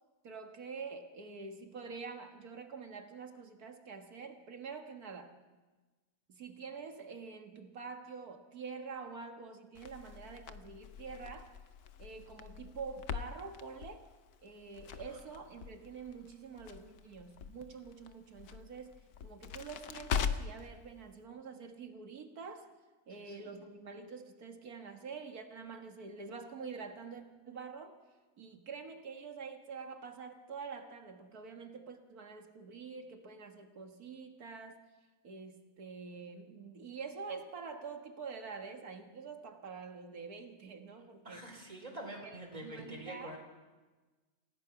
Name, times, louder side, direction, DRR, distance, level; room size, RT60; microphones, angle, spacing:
voice 1, 0.2-5.3 6.3-11.6 12.0-14.0 14.4-22.7 23.1-28.0 28.4-34.8 35.2-41.5 42.0-43.4, right 5 dB, 75° right, 5 dB, 2.1 m, -46 dB
Crackle, 9.7-20.7, left 7 dB, 80° left, 1.4 m, -42 dB
voice 2, 23.2-23.5 41.2-43.4, right 1 dB, 25° right, 0 dB, 4.3 m, -46 dB
28.0 x 16.5 x 5.9 m, 1.3 s
omnidirectional pair, 1.6 m